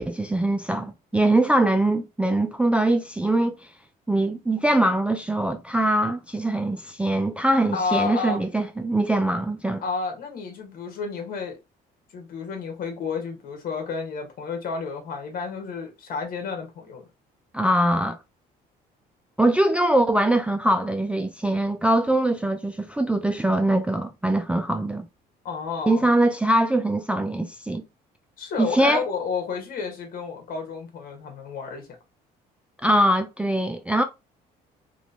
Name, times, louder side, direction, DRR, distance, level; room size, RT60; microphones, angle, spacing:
voice 1, 0.0-3.7 4.1-9.8 17.5-18.2 19.4-25.1 25.9-27.8 28.6-29.0 32.8-34.0, right 1 dB, 5° right, 0.3 m, -22 dB
voice 2, 7.7-8.4 9.8-11.6 12.1-17.0 25.4-26.1 28.4-31.9, left 5 dB, 60° left, 1.5 m, -31 dB
3.1 x 2.9 x 2.8 m
cardioid pair, 110°, 17 cm